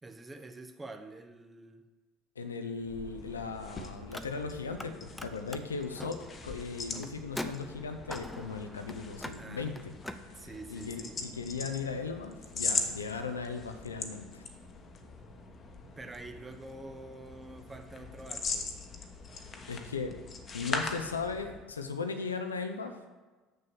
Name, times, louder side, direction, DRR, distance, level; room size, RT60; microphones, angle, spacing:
voice 1, 0.0-1.9 9.4-9.7 10.4-11.2 15.8-18.7, right 2 dB, 20° right, 6 dB, 1.0 m, -47 dB
voice 2, 2.4-14.4 19.7-20.2 20.5-23.0, left 4 dB, 80° left, 7 dB, 0.7 m, -37 dB
sound 1, 2.8-21.7, left 4 dB, 35° left, 1.1 m, -41 dB
Car, 4.1-4.9 5.1-10.2, left 1 dB, 5° left, 0.6 m, -43 dB
6.8 x 6.7 x 6.1 m, 1.3 s
figure-of-eight pair, 65°, 0 cm